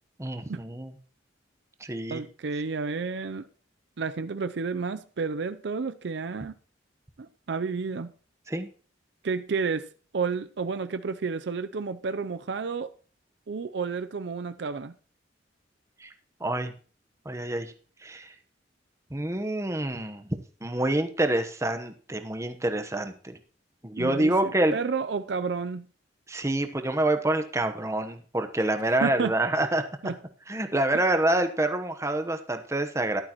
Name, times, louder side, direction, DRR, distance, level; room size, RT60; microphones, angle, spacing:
voice 1, 0.2-0.9 1.8-2.2 8.5-8.7 16.0-16.1 16.4-16.7 17.2-17.7 18.0-18.3 19.1-20.3 20.6-23.4 23.8-24.7 26.3-29.8 30.5-33.2, right 1 dB, 15° right, 1.0 m, -27 dB
voice 2, 2.1-3.5 4.0-6.5 7.2-8.1 9.2-12.9 13.5-14.9 24.0-25.9 29.0-29.4 30.0-30.2, right 5 dB, 70° right, 0.5 m, -31 dB
14.0 x 11.5 x 3.0 m
head